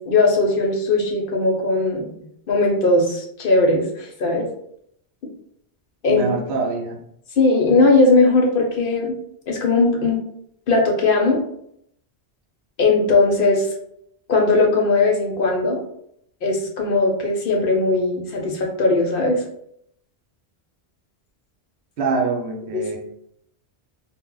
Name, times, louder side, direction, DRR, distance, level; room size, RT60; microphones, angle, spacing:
voice 1, 0.1-2.1 2.5-4.5 6.0-6.3 7.4-9.2 9.5-10.2 10.7-11.4 12.8-13.7 14.3-15.8 16.4-19.4 22.7-23.0, left 3 dB, 60° left, 0 dB, 0.7 m, -18 dB
voice 2, 6.1-7.0 22.0-23.0, right 3 dB, 75° right, 1 dB, 0.9 m, -24 dB
2.1 x 2.0 x 3.7 m, 0.72 s
omnidirectional pair, 1.1 m